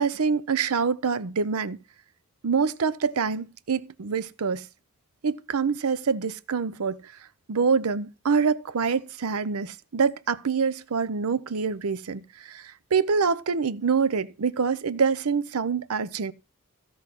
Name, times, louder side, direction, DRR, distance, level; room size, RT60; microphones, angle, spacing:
voice 1, 0.0-1.8 2.4-4.7 5.2-7.1 7.5-16.3, right 5 dB, 90° right, 0.6 m, -26 dB
15.5 x 5.5 x 5.9 m
head